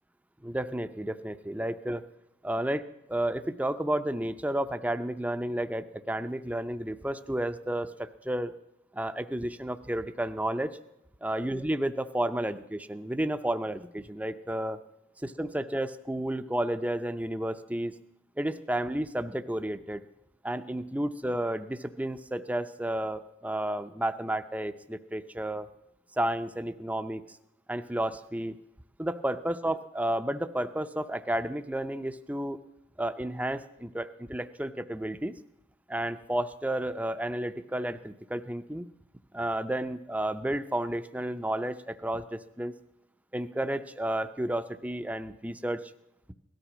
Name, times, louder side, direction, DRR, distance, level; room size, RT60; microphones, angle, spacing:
voice 1, 0.4-2.1 2.4-8.5 8.9-10.8 11.2-14.8 15.2-17.9 18.4-20.0 20.4-25.7 26.1-27.2 27.7-28.6 29.0-32.6 33.0-35.3 35.9-38.9 39.3-42.7 43.3-45.9, right 1 dB, 10° right, 10 dB, 0.5 m, -32 dB
17.5 x 13.0 x 6.0 m, 0.87 s
head